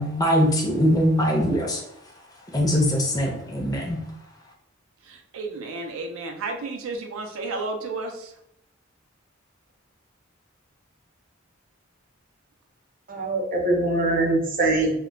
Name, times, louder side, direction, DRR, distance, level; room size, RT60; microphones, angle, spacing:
voice 1, 0.0-1.8 2.5-4.0, equal, 20° left, -1 dB, 0.4 m, -22 dB
voice 2, 5.1-8.3, right 3 dB, 85° right, 4 dB, 0.4 m, -32 dB
voice 3, 13.1-14.9, right 2 dB, 45° right, 0 dB, 0.6 m, -23 dB
2.1 x 2.1 x 3.7 m, 0.77 s
head